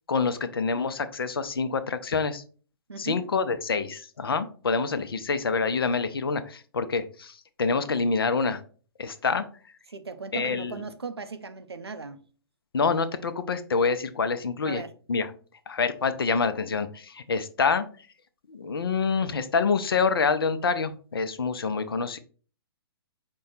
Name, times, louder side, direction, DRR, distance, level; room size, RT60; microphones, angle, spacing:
voice 1, 0.1-2.4 3.0-8.6 9.0-9.5 10.3-10.8 12.7-14.8 15.1-15.3 15.7-17.9 18.5-22.2, left 5 dB, 65° left, 0.5 m, -26 dB
voice 2, 2.9-3.2 9.9-12.2 14.6-14.9, right 4 dB, 80° right, 0.5 m, -37 dB
5.3 x 2.2 x 4.0 m
figure-of-eight pair, 120°, 13 cm